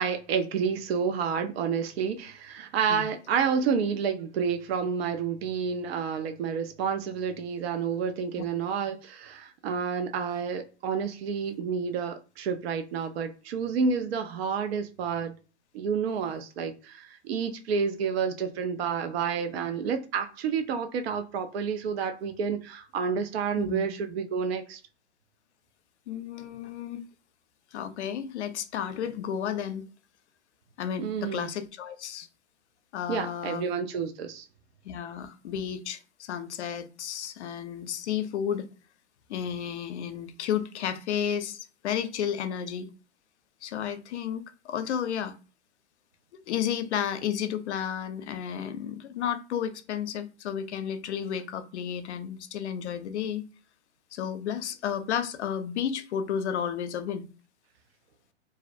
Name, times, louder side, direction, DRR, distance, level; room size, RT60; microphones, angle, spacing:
voice 1, 0.0-15.4 15.7-24.8 31.0-31.5 33.1-34.4, right 6 dB, 65° right, 0.5 m, -29 dB
voice 2, 26.1-27.1 27.7-29.8 30.8-32.3 32.9-33.7 34.8-38.7 39.3-42.9 43.6-45.4 46.5-53.5 54.1-57.3, left 8 dB, 80° left, 0.5 m, -32 dB
2.5 x 2.0 x 2.4 m
hypercardioid pair, 145°, 34 cm